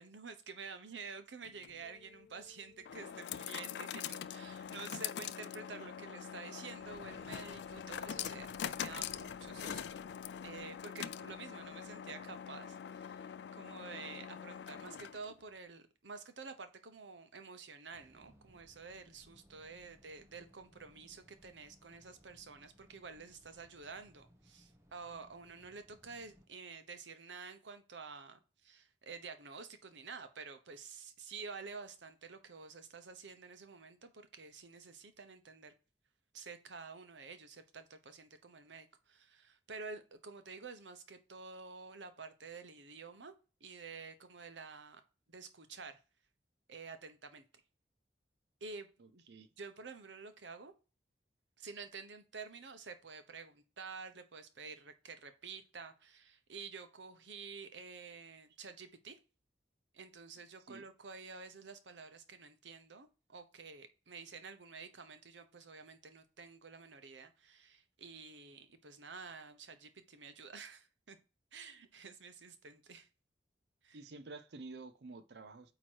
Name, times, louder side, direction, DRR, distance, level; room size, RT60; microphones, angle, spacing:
voice 1, 0.0-10.0 10.4-35.7 36.3-43.3 43.6-45.0 45.3-46.0 46.7-47.4 48.6-49.2 49.6-50.7 51.6-59.2 59.9-71.2 71.5-73.1 73.8-74.0, right 4 dB, 90° right, 1.0 m, -50 dB
sound 1, 1.4-15.4, left 8 dB, 70° left, 0.4 m, -44 dB
sound 2, 6.8-11.9, left 2 dB, 40° left, 0.7 m, -62 dB
sound 3, 17.9-26.5, equal, 15° right, 1.0 m, -65 dB
voice 2, 49.0-49.5 60.7-60.8 73.9-75.7, right 3 dB, 65° right, 0.5 m, -50 dB
8.7 x 3.0 x 4.6 m
head